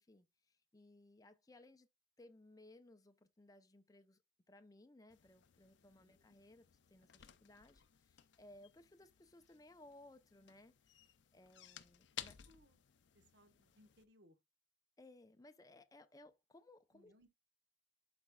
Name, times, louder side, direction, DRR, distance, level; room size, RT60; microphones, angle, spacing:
voice 1, 0.0-1.9 2.2-4.2 4.5-10.7 11.3-12.4 15.0-17.1, left 2 dB, 20° left, 0.5 m, -62 dB
sound 1, 5.1-14.0, left 11 dB, 80° left, 0.6 m, -57 dB
voice 2, 6.0-6.4 12.4-12.8 13.1-14.4 16.9-17.3, equal, 70° right, 1.2 m, -68 dB
11.5 x 4.3 x 2.3 m
head